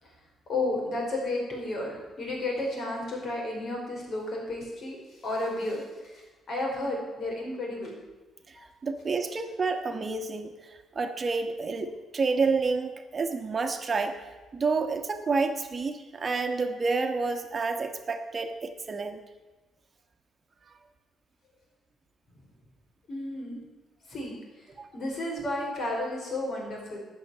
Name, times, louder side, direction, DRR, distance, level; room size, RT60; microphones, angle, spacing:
voice 1, 0.5-5.0 5.2-6.2 6.5-8.0 8.6-8.7 23.1-23.6 24.1-24.3 24.9-27.0, left 2 dB, 55° left, 0 dB, 4.9 m, -32 dB
voice 2, 8.8-14.2 14.5-19.2 24.8-24.9, right 4 dB, 35° right, 6 dB, 1.2 m, -29 dB
12.5 x 6.6 x 9.2 m, 1.2 s
cardioid pair, 90°, 0 cm